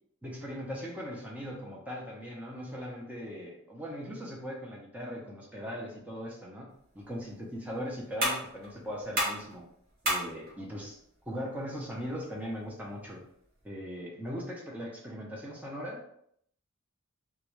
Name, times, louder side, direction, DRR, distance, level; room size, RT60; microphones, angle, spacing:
voice 1, 0.2-9.6 10.0-11.0 11.3-13.2 13.6-16.0, equal, 10° right, -3 dB, 0.4 m, -39 dB
sound 1, 6.7-13.7, equal, 50° right, 0.9 m, -37 dB
2.3 x 2.1 x 3.0 m, 0.69 s
head